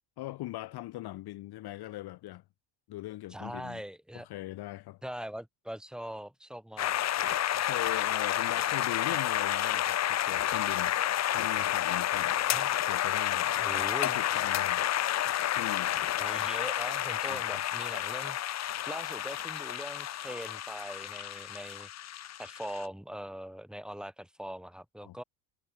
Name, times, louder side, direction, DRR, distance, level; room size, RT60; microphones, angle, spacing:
voice 1, 0.2-2.4 2.9-3.8 4.1-5.0 7.5-14.8 15.5-16.0 17.3-17.6 25.0-25.2, left 16 dB, 55° left, 1.6 m, -41 dB
voice 2, 3.3-4.3 5.0-7.0 9.1-9.2 12.5-12.7 13.6-14.2 16.2-18.4 18.9-21.9 22.4-25.2, equal, ahead, 6.2 m, -41 dB
sound 1, 6.8-22.9, left 12 dB, 35° left, 0.9 m, -30 dB
cardioid pair, 165°, 46 cm